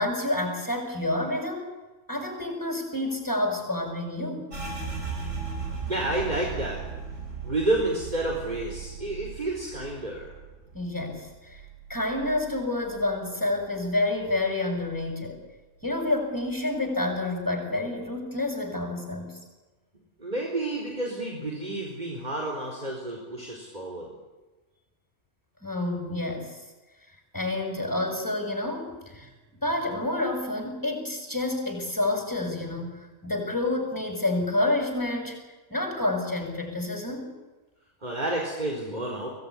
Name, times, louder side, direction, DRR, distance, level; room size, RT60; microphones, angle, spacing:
voice 1, 0.0-1.7 2.1-4.5 10.7-11.6 11.9-15.4 15.8-19.4 25.6-26.6 27.3-29.3 29.6-35.4 35.7-37.3, left 2 dB, 15° left, 3 dB, 6.9 m, -29 dB
sound 1, 4.5-13.9 14.2-15.4 15.8-16.2 16.7-17.3, right 5 dB, 85° right, 5.9 m, -38 dB
voice 2, 5.9-6.8 7.4-10.3 20.2-24.1 38.0-39.3, right 2 dB, 35° right, -2 dB, 4.6 m, -30 dB
24.5 x 18.0 x 10.0 m, 1.2 s
omnidirectional pair, 1.3 m